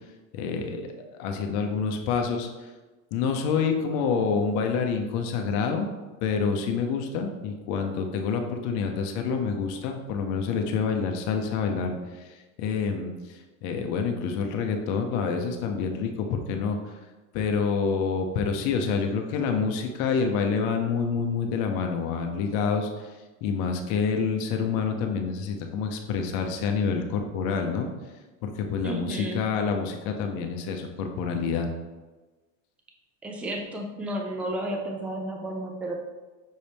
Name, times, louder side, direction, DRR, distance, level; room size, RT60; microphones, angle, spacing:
voice 1, 0.3-0.9 1.2-2.5 3.1-5.9 6.2-11.9 12.6-13.1 13.6-16.9 17.3-23.1 23.4-27.9 28.4-31.7, left 5 dB, 50° left, 4 dB, 0.8 m, -27 dB
voice 2, 28.8-29.4 33.2-36.0, right 1 dB, 5° right, 1 dB, 0.3 m, -32 dB
6.4 x 4.2 x 3.5 m, 1.2 s
supercardioid pair, 150°, 38 cm